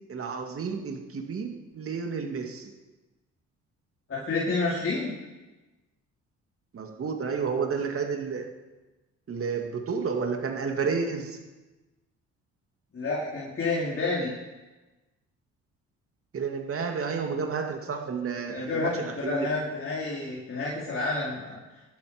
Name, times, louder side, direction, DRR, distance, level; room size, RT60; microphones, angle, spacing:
voice 1, 0.1-2.7 6.7-8.5 9.3-11.4 16.3-19.5, right 5 dB, 45° right, 3 dB, 2.3 m, -31 dB
voice 2, 4.1-5.1 12.9-14.3 18.5-21.6, left 3 dB, 45° left, -6 dB, 4.2 m, -29 dB
21.5 x 11.5 x 5.2 m, 1.1 s
cardioid pair, 90°, 30 cm